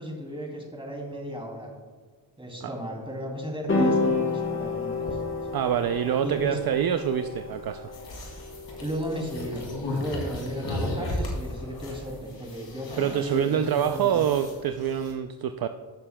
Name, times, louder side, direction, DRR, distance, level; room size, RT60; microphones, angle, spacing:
voice 1, 0.0-1.7 2.4-5.2 6.2-6.6 8.8-14.4, equal, 10° right, -1 dB, 2.6 m, -35 dB
sound 1, 3.7-12.1, left 3 dB, 25° left, 1.4 m, -31 dB
voice 2, 5.5-7.9 13.0-15.7, right 9 dB, 55° right, 9 dB, 0.5 m, -26 dB
sound 2, 7.9-15.1, left 1 dB, 70° left, 2.5 m, -35 dB
14.5 x 6.8 x 2.2 m, 1.5 s
cardioid pair, 75°, 45 cm